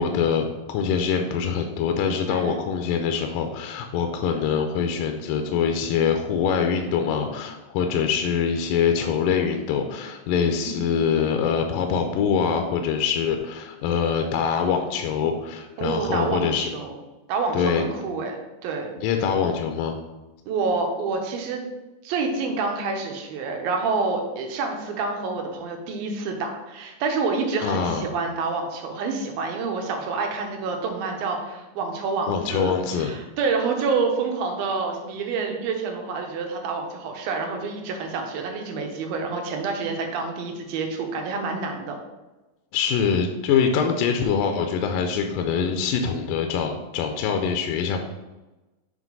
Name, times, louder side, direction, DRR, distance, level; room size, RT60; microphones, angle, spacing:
voice 1, 0.0-16.7 17.5-17.9 19.0-20.0 27.6-28.0 32.3-33.1 42.7-48.0, left 6 dB, 80° left, 5 dB, 2.0 m, -24 dB
voice 2, 2.3-2.6 10.5-11.1 15.8-17.0 17.3-18.9 20.5-21.6 22.0-42.0, right 4 dB, 80° right, 2 dB, 2.7 m, -28 dB
7.4 x 3.2 x 5.3 m, 1.1 s
omnidirectional pair, 4.1 m